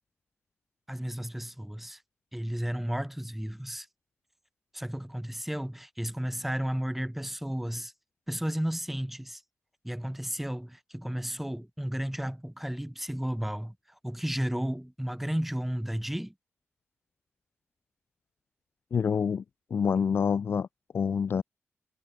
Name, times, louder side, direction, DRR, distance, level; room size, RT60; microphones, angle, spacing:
voice 1, 0.9-2.0 2.3-3.9 4.7-7.9 8.3-9.4 9.8-13.8 14.0-16.3, equal, 5° right, 7.2 m, -33 dB
voice 2, 18.9-19.4 19.7-20.7 20.9-21.4, left 6 dB, 55° left, 1.2 m, -26 dB
wide cardioid pair, 145°, 5 cm